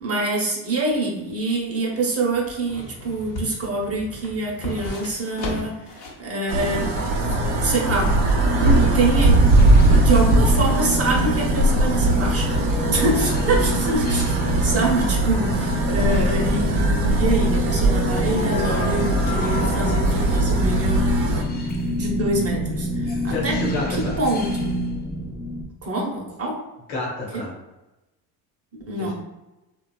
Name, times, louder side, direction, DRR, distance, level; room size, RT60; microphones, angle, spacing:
voice 1, 0.0-5.8 6.2-6.9 7.2-8.3 8.9-9.5 10.0-12.6 12.9-21.5 21.8-23.6 24.2-24.8 25.8-26.6 28.9-29.1, right 2 dB, 30° right, -1 dB, 0.8 m, -25 dB
sound 1, 1.2-6.3 6.6-6.7, left 2 dB, 50° left, 0.9 m, -35 dB
sound 2, 6.5-21.4, right 2 dB, 60° right, 0.7 m, -20 dB
sound 3, 6.8-25.6, left 1 dB, 20° left, 0.4 m, -27 dB
voice 2, 23.3-24.2 26.9-27.5 29.0-29.1, left 3 dB, 90° left, -3 dB, 1.0 m, -29 dB
2.7 x 2.3 x 2.3 m, 1.0 s
hypercardioid pair, 65°, 49 cm